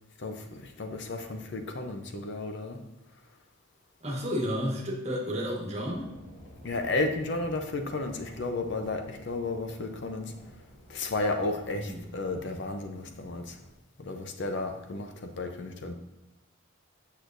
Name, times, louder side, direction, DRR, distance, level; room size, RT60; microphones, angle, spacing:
voice 1, 0.2-2.8 6.6-10.3 10.9-13.6 14.0-15.9, left 2 dB, 55° left, 5 dB, 0.6 m, -33 dB
voice 2, 4.0-6.1 11.8-12.0, equal, 30° right, -2 dB, 1.3 m, -31 dB
sound 1, 5.8-13.7, equal, 30° left, 1.4 m, -52 dB
8.3 x 6.3 x 2.6 m, 0.95 s
head